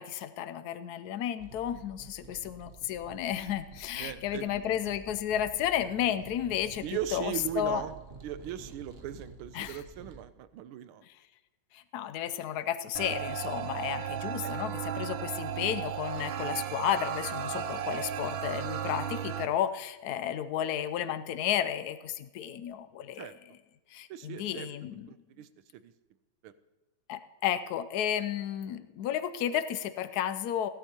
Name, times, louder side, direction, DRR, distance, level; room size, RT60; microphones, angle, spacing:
voice 1, 0.0-6.8 7.1-7.8 9.5-9.8 11.1-11.2 11.7-23.3 23.9-25.1 27.1-30.7, left 10 dB, 85° left, 12 dB, 0.8 m, -32 dB
sound 1, 1.4-10.2, right 4 dB, 55° right, 0.6 m, -50 dB
voice 2, 4.0-4.8 6.8-7.9 8.2-11.0 23.1-23.3 24.1-24.7 25.1-25.9 26.4-26.5, right 10 dB, 90° right, 13 dB, 1.6 m, -39 dB
sound 2, 13.0-19.5, right 9 dB, 70° right, 1.4 m, -35 dB
16.5 x 11.5 x 2.9 m, 1.1 s
omnidirectional pair, 2.3 m